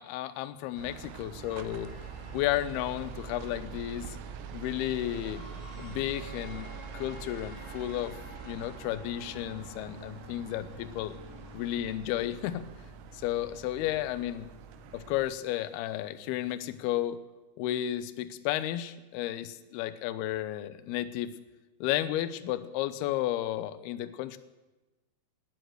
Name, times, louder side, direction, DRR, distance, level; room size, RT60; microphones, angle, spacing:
voice 1, 0.0-0.9 1.2-1.9 2.3-4.2 4.5-5.4 5.8-8.2 8.4-11.2 11.5-12.6 13.1-14.5 14.9-17.2 17.6-21.3 21.8-24.4, left 13 dB, 85° left, 13 dB, 2.2 m, -33 dB
sound 1, 0.6-16.8, left 6 dB, 60° left, 2.3 m, -55 dB
sound 2, 0.8-15.3, right 8 dB, 80° right, 2.7 m, -45 dB
sound 3, 1.4-11.8, left 2 dB, 45° left, 4.0 m, -52 dB
18.5 x 10.5 x 6.5 m, 1.1 s
omnidirectional pair, 5.5 m